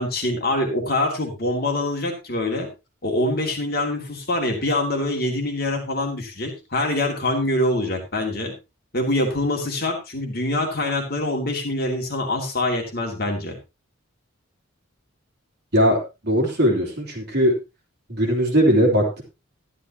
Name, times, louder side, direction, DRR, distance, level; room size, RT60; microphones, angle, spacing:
voice 1, 0.0-2.7 3.0-8.5 8.9-13.5, left 1 dB, 45° left, 1 dB, 2.6 m, -24 dB
voice 2, 15.7-17.5 18.1-19.2, equal, 50° right, 0 dB, 3.4 m, -19 dB
13.0 x 11.5 x 3.0 m, 0.26 s
head